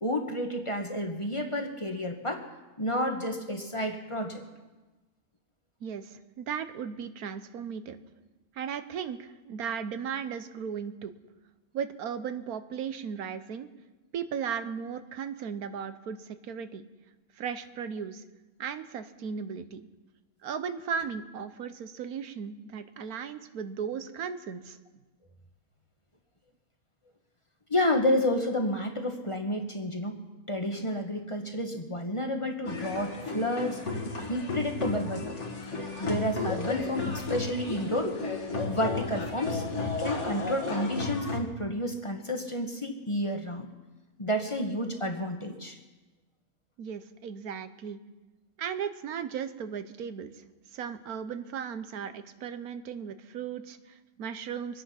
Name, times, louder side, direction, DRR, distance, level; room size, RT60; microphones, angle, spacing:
voice 1, 0.0-2.4 2.8-4.4 27.7-30.2 30.5-35.3 36.0-38.1 38.6-39.6 40.0-43.7 44.2-45.8, left 1 dB, 20° left, 4 dB, 1.3 m, -30 dB
voice 2, 5.8-8.0 8.5-11.1 11.7-13.7 14.1-16.9 17.4-18.2 18.6-19.8 20.4-24.8 46.8-48.0 48.6-50.3 50.7-54.8, right 7 dB, 85° right, 11 dB, 1.4 m, -36 dB
sound 1, 32.6-41.4, left 3 dB, 55° left, 2.1 m, -33 dB
24.5 x 9.8 x 5.8 m, 1.2 s
omnidirectional pair, 1.5 m